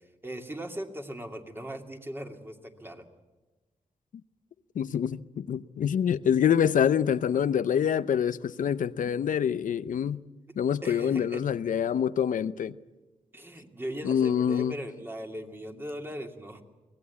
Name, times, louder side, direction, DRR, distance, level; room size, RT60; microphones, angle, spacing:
voice 1, 0.0-3.1 10.8-11.4 13.3-16.6, equal, 15° right, 2.5 m, -39 dB
voice 2, 4.8-10.2 10.6-12.8 14.0-14.7, left 8 dB, 90° left, 0.6 m, -26 dB
24.0 x 17.5 x 8.6 m
wide cardioid pair, 95°, 13 cm